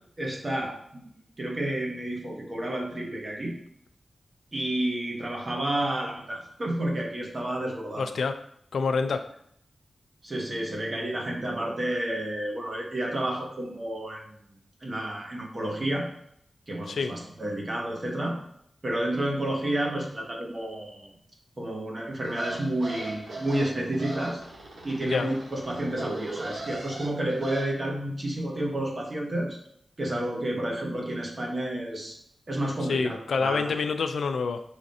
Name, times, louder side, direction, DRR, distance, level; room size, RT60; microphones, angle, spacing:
voice 1, 0.2-1.0 1.4-3.6 4.5-8.1 10.2-14.3 14.8-16.1 16.7-18.4 18.8-21.1 21.6-24.4 24.8-29.6 30.0-32.1 32.5-33.7, right 1 dB, 35° right, 0 dB, 1.0 m, -30 dB
voice 2, 8.0-8.4 8.7-9.3 16.9-17.1 25.0-25.3 32.9-34.6, left 5 dB, 85° left, 8 dB, 0.3 m, -27 dB
sound 1, 22.2-27.7, right 2 dB, 85° right, 1.3 m, -39 dB
5.0 x 2.5 x 4.1 m, 0.67 s
wide cardioid pair, 130°, 0 cm